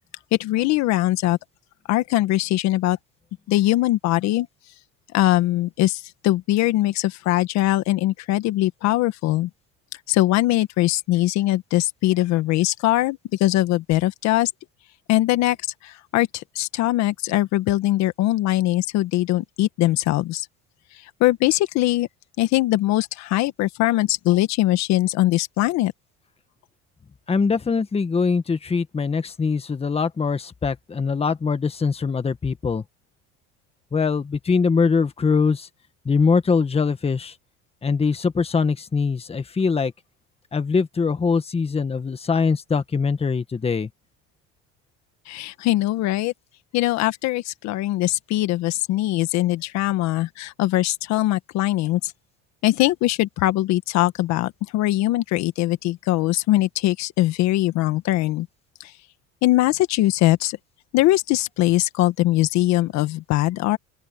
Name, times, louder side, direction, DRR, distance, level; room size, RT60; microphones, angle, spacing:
voice 1, 0.4-1.4 1.9-3.0 3.5-4.5 5.1-9.5 10.1-14.5 15.1-15.6 15.8-20.5 21.2-22.1 22.4-25.9 45.3-46.3 46.7-52.1 52.6-58.5 58.8-58.9 59.4-60.6 60.9-63.8, left 16 dB, 65° left, 1.6 m, -21 dB
voice 2, 27.3-32.8 33.9-35.7 36.0-37.3 37.8-39.9 40.5-43.9, left 5 dB, 20° left, 1.7 m, -22 dB
open air
cardioid pair, 120°, 30 cm